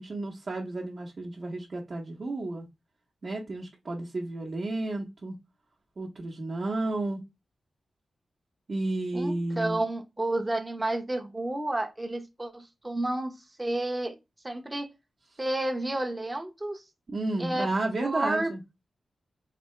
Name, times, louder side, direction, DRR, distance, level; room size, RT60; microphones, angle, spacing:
voice 1, 0.0-2.7 3.2-5.3 6.0-7.2 8.7-9.8 17.1-18.6, right 2 dB, 45° right, 0.9 m, -32 dB
voice 2, 9.1-13.3 13.6-14.2 14.4-14.9 15.4-16.8 17.4-17.7 18.0-18.5, right 1 dB, 15° right, 0.8 m, -30 dB
4.2 x 2.8 x 3.1 m
wide cardioid pair, 130°, 0 cm